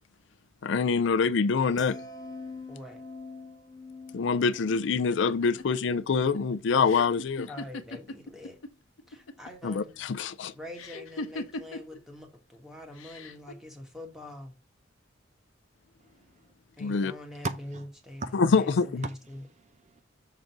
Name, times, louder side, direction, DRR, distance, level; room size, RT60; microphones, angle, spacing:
voice 1, 0.6-2.0 4.1-7.5 9.6-10.5 16.8-17.1 18.3-19.0, left 5 dB, 60° left, 0.4 m, -25 dB
sound 1, 1.8-8.1 8.4-8.7, left 3 dB, 20° left, 0.6 m, -46 dB
voice 2, 2.7-3.0 7.5-8.6 9.1-10.0 10.5-14.5 16.8-19.4, left 1 dB, ahead, 1.6 m, -44 dB
sound 2, 5.1-8.7 9.0-9.6 10.7-12.0 12.9-13.5, left 2 dB, 85° left, 0.9 m, -39 dB
voice 3, 16.0-16.4 17.4-17.8 18.2-18.3 19.0-20.0, right 3 dB, 35° right, 0.6 m, -38 dB
6.6 x 3.8 x 5.9 m
head